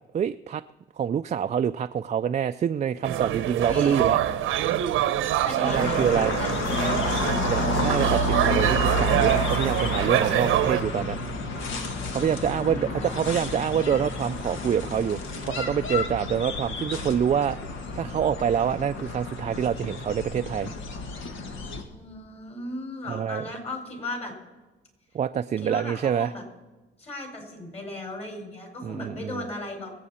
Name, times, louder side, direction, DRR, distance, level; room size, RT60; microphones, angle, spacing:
voice 1, 0.1-0.6 1.0-4.2 5.6-6.3 7.5-11.2 12.1-15.2 15.5-17.6 18.0-20.7 23.1-23.4 25.1-26.3 28.8-29.4, right 8 dB, 35° right, 8 dB, 0.4 m, -26 dB
sound 1, 3.0-10.8, right 12 dB, 90° right, 0.9 m, -25 dB
voice 2, 3.7-4.2 5.4-7.1 12.4-13.1 21.9-24.3 25.6-26.4 27.0-29.9, left 2 dB, 30° left, 2 dB, 4.7 m, -36 dB
sound 2, 5.7-21.8, left 1 dB, 75° left, 1.7 m, -30 dB
25.0 x 8.4 x 4.3 m, 1.2 s
cardioid pair, 90°, 20 cm